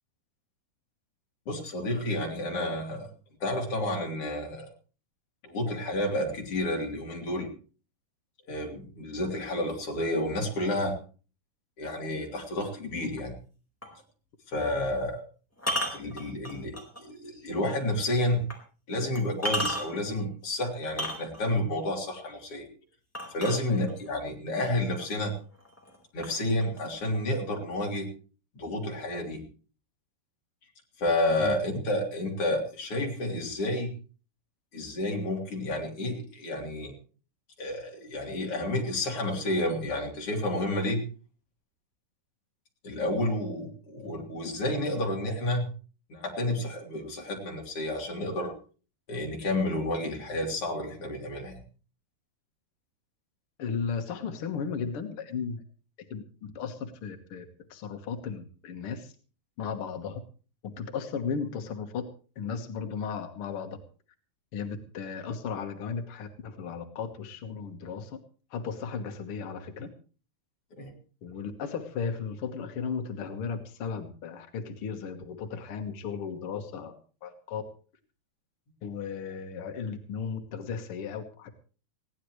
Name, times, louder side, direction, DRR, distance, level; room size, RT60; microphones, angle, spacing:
voice 1, 1.5-3.1 3.4-4.7 5.4-7.5 8.5-11.0 11.8-13.4 14.5-15.2 15.9-18.4 18.9-22.7 23.3-25.3 26.1-28.1 28.5-29.4 31.0-33.9 34.7-36.9 37.6-41.0 42.8-45.7 46.1-48.5 49.1-51.6 70.8-70.9, left 1 dB, 35° left, 1 dB, 3.9 m, -30 dB
sound 1, 13.8-14.0 15.6-17.0 17.5-17.6 18.5-18.6 19.2-20.1 20.8-21.6 23.1-24.1 25.0-25.1 25.5-26.0 26.2-27.2, equal, 5° left, 3.9 m, -33 dB
voice 2, 53.6-55.6 56.1-56.2 56.5-57.4 57.7-59.1 59.6-60.2 60.6-62.0 62.3-63.8 64.5-68.2 68.5-69.9 71.2-76.9 77.2-77.6 78.8-81.5, left 6 dB, 70° left, 6 dB, 1.3 m, -35 dB
20.5 x 16.5 x 3.2 m, 0.38 s
omnidirectional pair, 4.7 m